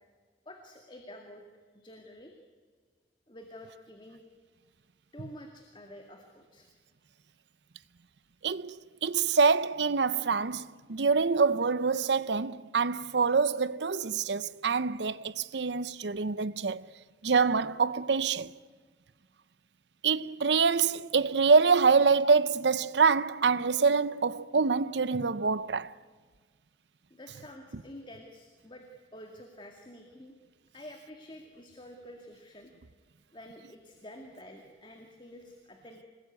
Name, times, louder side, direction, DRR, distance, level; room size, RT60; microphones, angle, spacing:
voice 1, 0.5-1.5 1.7-2.4 3.3-4.2 5.1-6.7 27.1-28.8 29.1-30.3 30.7-32.7 33.3-36.0, left 1 dB, 25° left, 2.2 m, -49 dB
voice 2, 8.4-8.8 9.0-16.9 17.2-18.5 20.0-25.9, right 5 dB, 75° right, 0.7 m, -25 dB
26.0 x 20.5 x 9.6 m
head